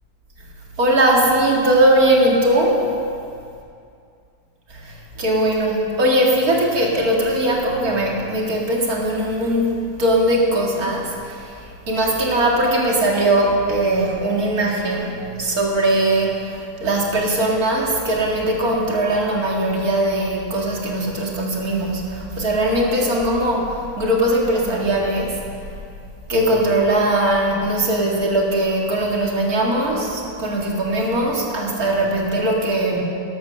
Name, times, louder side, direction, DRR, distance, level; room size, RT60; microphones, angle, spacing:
voice 1, 0.8-2.9 4.7-25.4 26.3-33.0, right 1 dB, 50° right, -1 dB, 2.4 m, -20 dB
13.5 x 11.0 x 6.4 m, 2.4 s
omnidirectional pair, 2.1 m